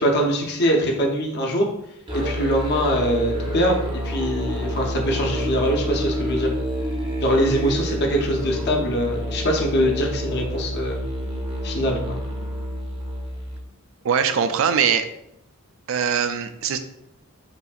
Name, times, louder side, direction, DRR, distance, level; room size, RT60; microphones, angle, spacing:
voice 1, 0.0-1.7 2.1-6.5 7.2-11.0 11.6-12.2, equal, 50° left, 0 dB, 0.7 m, -23 dB
Musical instrument, 2.1-13.7, equal, 20° right, 0.6 m, -28 dB
voice 2, 14.0-15.1 15.9-16.8, right 7 dB, 65° right, 9 dB, 0.4 m, -21 dB
5.6 x 2.6 x 2.4 m, 0.79 s
head